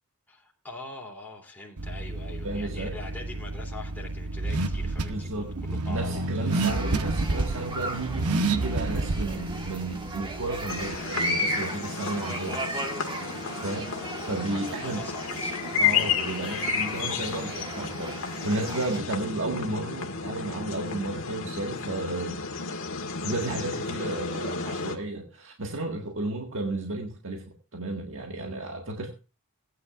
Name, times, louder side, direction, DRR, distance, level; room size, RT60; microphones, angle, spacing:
voice 1, 0.3-6.6 13.7-15.6 15.9-16.2 23.5-23.7 24.7-24.9, left 2 dB, 10° left, -2 dB, 2.9 m, -43 dB
Car / Accelerating revving vroom, 1.8-11.0, right 3 dB, 85° right, 0.9 m, -30 dB
voice 2, 2.4-3.0 5.1-12.6 13.6-13.9 14.3-15.0 15.8-22.4 23.2-29.1, right 2 dB, 60° right, 1 dB, 1.7 m, -33 dB
sound 1, 6.5-19.0, right 1 dB, 20° right, 1.4 m, -36 dB
sound 2, 10.7-25.0, left 6 dB, 65° left, 1.8 m, -32 dB
18.5 x 9.7 x 2.4 m, 0.32 s
head